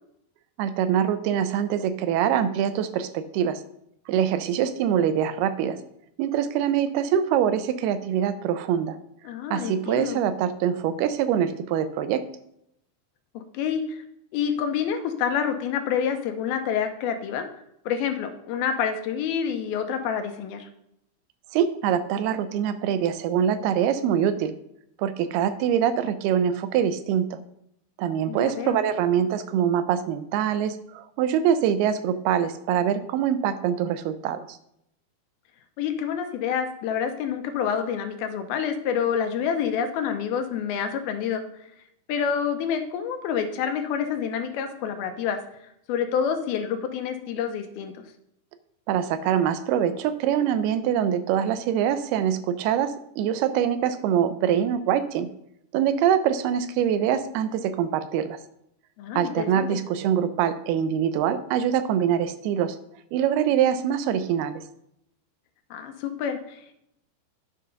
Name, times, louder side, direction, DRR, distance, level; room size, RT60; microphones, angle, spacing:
voice 1, 0.6-3.6 4.1-5.8 6.2-9.0 9.5-12.2 21.5-24.5 25.0-27.4 28.0-34.6 48.9-55.3 55.7-58.4 59.2-62.8 63.1-64.6, right 9 dB, 85° right, 12 dB, 2.6 m, -24 dB
voice 2, 9.2-10.2 13.3-14.0 14.3-17.4 17.9-20.7 28.3-28.8 35.8-41.4 42.1-45.4 45.9-47.9 59.0-59.8 65.7-66.7, left 7 dB, 80° left, 7 dB, 2.6 m, -28 dB
9.6 x 5.4 x 5.7 m, 0.76 s
omnidirectional pair, 4.5 m